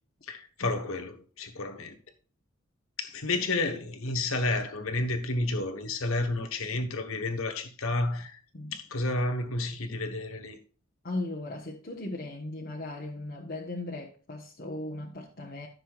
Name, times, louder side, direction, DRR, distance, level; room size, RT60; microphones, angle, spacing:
voice 1, 0.2-1.9 3.0-8.4 8.7-10.6, left 2 dB, 90° left, 1.3 m, -31 dB
voice 2, 11.0-15.7, left 2 dB, 45° left, 1.2 m, -37 dB
13.5 x 6.7 x 2.5 m
head